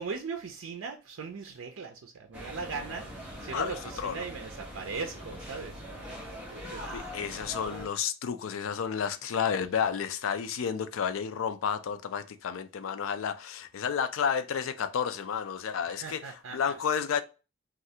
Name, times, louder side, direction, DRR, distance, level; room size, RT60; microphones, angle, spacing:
voice 1, 0.0-6.2 6.5-6.9 16.0-16.8, right 5 dB, 80° right, 0.5 m, -39 dB
sound 1, 2.3-7.9, equal, 5° right, 0.9 m, -42 dB
voice 2, 3.5-4.2 6.9-17.2, left 7 dB, 80° left, 0.4 m, -31 dB
3.1 x 2.4 x 2.7 m
head